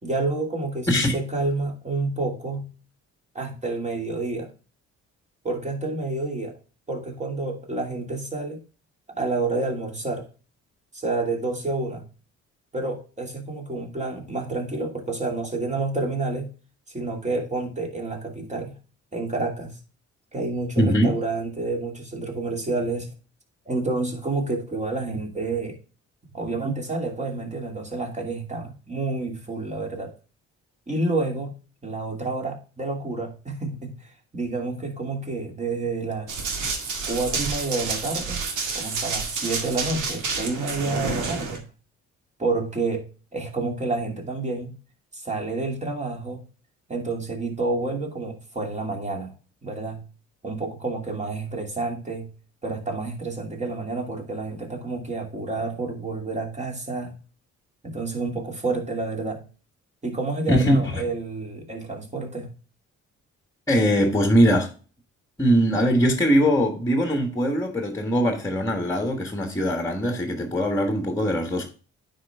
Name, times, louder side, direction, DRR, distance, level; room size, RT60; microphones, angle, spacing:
voice 1, 0.0-2.7 3.3-4.5 5.4-6.6 6.9-8.6 9.1-10.3 10.9-12.1 12.7-16.5 16.9-18.8 19.1-19.8 20.3-23.1 23.7-25.8 26.3-30.1 30.9-31.5 31.8-36.4 37.0-38.4 38.7-41.6 42.4-44.8 45.1-46.4 46.9-49.3 49.6-50.0 50.4-52.3 52.6-57.2 57.8-59.4 60.0-62.5, right 3 dB, 25° right, 2.5 m, -29 dB
voice 2, 20.8-21.1 60.5-61.0 63.7-64.7 65.4-71.7, equal, 10° left, 1.5 m, -21 dB
Run, 36.3-41.6, right 4 dB, 80° right, 2.0 m, -29 dB
9.4 x 4.6 x 3.5 m
cardioid pair, 90°, 30 cm